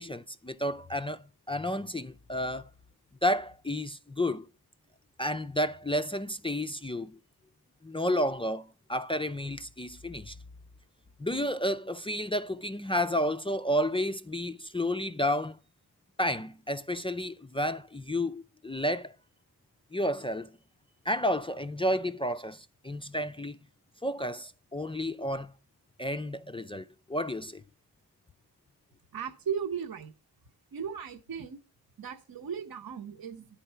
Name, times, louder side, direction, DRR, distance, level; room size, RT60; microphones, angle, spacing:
voice 1, 0.0-2.7 3.2-4.5 5.2-7.2 7.8-10.4 11.2-15.6 16.2-19.2 19.9-20.6 21.1-23.6 24.0-25.5 26.0-27.6, equal, 15° left, 0.3 m, -31 dB
voice 2, 29.1-30.1 30.7-31.6 32.0-33.5, right 7 dB, 60° right, 0.9 m, -36 dB
10.0 x 4.5 x 5.6 m
cardioid pair, 55°, 40 cm